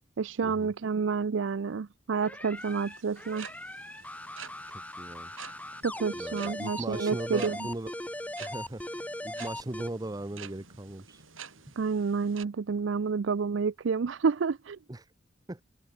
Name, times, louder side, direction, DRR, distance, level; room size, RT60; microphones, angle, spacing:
voice 1, 0.2-3.5 5.8-7.6 11.8-14.8, right 5 dB, 65° right, 0.5 m, -29 dB
sound 1, 2.2-9.9, left 1 dB, 5° left, 2.1 m, -39 dB
sound 2, 2.6-12.5, right 7 dB, 85° right, 6.2 m, -49 dB
voice 2, 4.7-5.3 6.1-7.9 8.4-8.8 9.2-11.2 14.9-15.1 15.5-15.6, right 1 dB, 20° right, 0.7 m, -38 dB
head